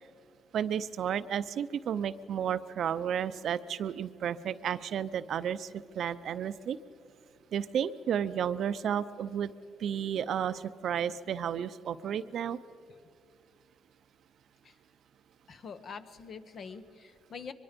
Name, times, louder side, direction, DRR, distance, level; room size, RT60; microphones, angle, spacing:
voice 1, 0.5-6.8 7.5-9.5 9.8-12.6, right 8 dB, 65° right, 14 dB, 0.6 m, -32 dB
voice 2, 15.5-17.5, left 5 dB, 55° left, 10 dB, 1.1 m, -45 dB
23.0 x 22.0 x 5.2 m, 2.3 s
cardioid pair, 90°, 0 cm